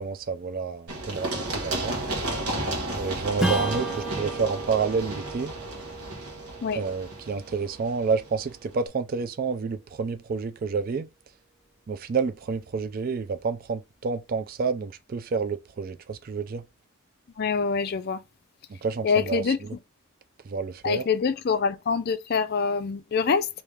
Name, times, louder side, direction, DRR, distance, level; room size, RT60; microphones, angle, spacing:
voice 1, 0.0-2.0 3.0-5.5 6.7-11.1 11.9-16.6 18.7-19.8 20.4-21.0, right 5 dB, 40° right, 0.3 m, -29 dB
Run, 0.9-8.5, right 1 dB, 85° right, 1.2 m, -33 dB
Strum, 3.4-8.3, right 2 dB, ahead, 0.8 m, -34 dB
voice 2, 17.4-18.2 19.0-19.6 20.8-23.5, left 5 dB, 45° left, 0.4 m, -25 dB
3.5 x 2.8 x 3.1 m
head